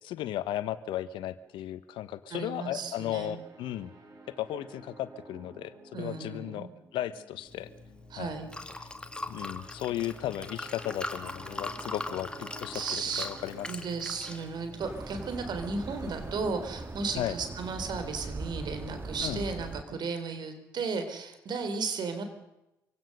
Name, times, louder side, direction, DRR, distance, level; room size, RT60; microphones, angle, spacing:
voice 1, 0.0-3.9 4.4-7.7 8.2-8.3 9.3-13.8 17.2-17.3 19.2-19.4, left 12 dB, 70° left, 14 dB, 1.1 m, -35 dB
voice 2, 2.3-3.4 5.9-6.7 8.1-8.5 12.7-13.3 13.7-22.2, right 4 dB, 60° right, 8 dB, 4.0 m, -34 dB
sound 1, 2.7-16.3, right 2 dB, 40° right, 5.4 m, -53 dB
Liquid, 7.5-18.0, left 2 dB, 10° left, 2.5 m, -42 dB
sound 2, 14.8-19.8, right 3 dB, 25° right, 1.5 m, -40 dB
25.5 x 17.0 x 6.8 m, 0.92 s
hypercardioid pair, 55°, 9 cm